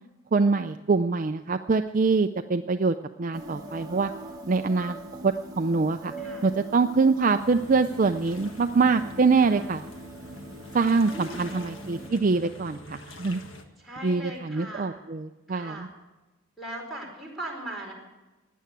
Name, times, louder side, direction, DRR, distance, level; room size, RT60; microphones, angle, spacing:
voice 1, 0.3-4.1 4.5-5.0 5.2-6.1 6.4-9.8 10.7-13.4 14.0-15.9, right 4 dB, 40° right, 7 dB, 0.4 m, -24 dB
sound 1, 3.3-12.1, right 1 dB, 15° right, 1.1 m, -42 dB
voice 2, 6.2-6.5 9.3-9.7 10.4-10.5 11.1-11.6 13.8-15.0 15.5-15.9 16.6-17.9, right 1 dB, ahead, -2 dB, 4.5 m, -39 dB
sound 2, 7.4-13.6, left 1 dB, 65° left, 1.5 m, -46 dB
16.0 x 10.0 x 8.3 m, 1.1 s
head